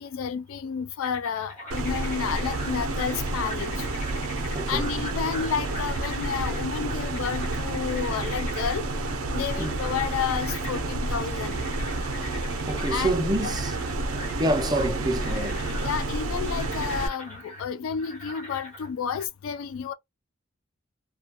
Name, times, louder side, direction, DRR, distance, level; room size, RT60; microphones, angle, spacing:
voice 1, 0.0-3.9 4.7-8.9 9.3-11.6 12.9-13.1 15.8-19.9, left 7 dB, 75° left, 0.3 m, -31 dB
sound 1, 1.0-19.3, left 1 dB, 35° left, 1.0 m, -42 dB
sound 2, 1.7-17.1, right 2 dB, 80° right, 0.5 m, -30 dB
voice 2, 4.5-4.9 9.6-9.8 12.7-13.8 14.4-15.7, right 1 dB, 20° right, 0.4 m, -27 dB
2.2 x 2.2 x 2.7 m
head